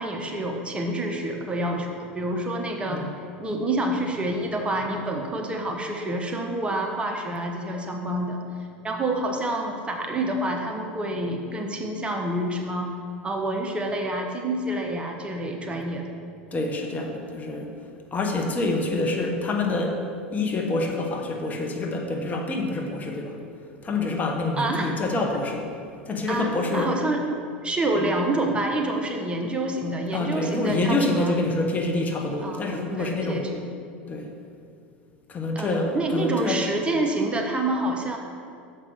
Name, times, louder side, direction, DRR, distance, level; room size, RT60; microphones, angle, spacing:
voice 1, 0.0-3.0 3.4-8.4 8.8-12.9 13.2-16.2 24.6-24.9 26.3-27.2 27.6-31.4 32.4-33.6 35.5-38.2, right 1 dB, 20° right, 2 dB, 1.0 m, -28 dB
voice 2, 16.5-17.7 18.1-20.0 20.3-23.4 23.8-25.7 26.1-26.9 28.0-28.1 30.1-33.5 34.1-34.3 35.3-36.6, left 2 dB, 25° left, 2 dB, 1.2 m, -26 dB
7.2 x 5.3 x 6.7 m, 2.3 s
hypercardioid pair, 80°, 6 cm